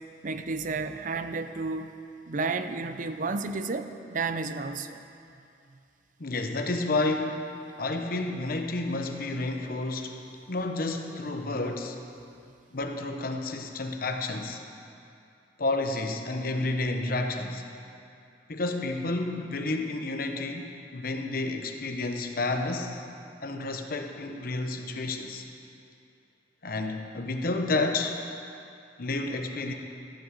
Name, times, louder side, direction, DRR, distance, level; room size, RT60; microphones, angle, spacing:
voice 1, 0.2-1.9 2.3-5.0, right 3 dB, 50° right, 9 dB, 0.6 m, -32 dB
voice 2, 6.2-7.5 7.8-10.2 10.5-12.0 12.7-14.6 15.6-17.6 18.5-23.0 23.4-25.4 26.6-28.2 29.0-29.7, left 2 dB, 55° left, 5 dB, 0.9 m, -30 dB
14.5 x 6.2 x 7.5 m, 2.5 s
head